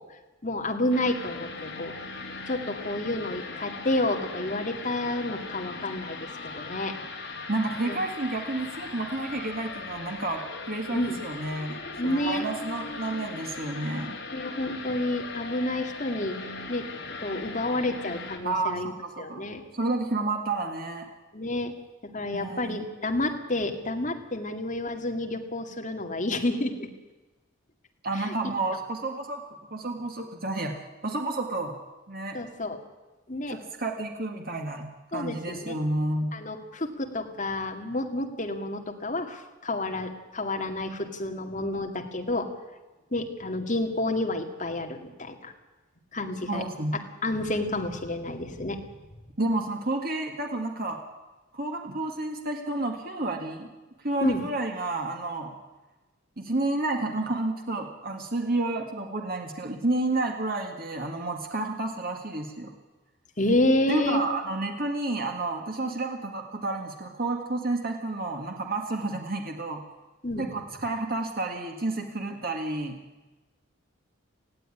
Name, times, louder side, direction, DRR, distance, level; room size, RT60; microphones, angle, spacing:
voice 1, 0.4-1.9 2.5-6.2 6.4-6.9 7.9-8.0 10.9-11.2 12.0-12.5 14.3-16.4 16.7-16.9 17.2-18.9 19.2-19.6 21.3-21.7 22.0-26.9 28.1-28.3 32.3-32.8 33.3-33.6 35.1-35.8 36.3-42.5 43.1-45.5 46.1-46.6 47.2-48.8 54.2-54.4 63.4-64.2 70.2-70.4, left 1 dB, 35° left, 3 dB, 2.2 m, -29 dB
sound 1, 0.9-18.4, left 3 dB, 55° left, 3.3 m, -39 dB
voice 2, 7.5-10.4 10.7-14.2 18.4-19.5 19.7-21.1 22.3-22.8 28.0-29.4 29.7-30.7 31.0-31.8 32.1-32.4 33.5-34.8 35.1-36.3 46.5-46.9 49.4-51.0 51.5-53.7 54.0-55.5 56.4-62.7 63.9-69.8 70.4-73.0, right 2 dB, 45° right, 2 dB, 1.9 m, -30 dB
18.5 x 15.5 x 9.9 m, 1.1 s
head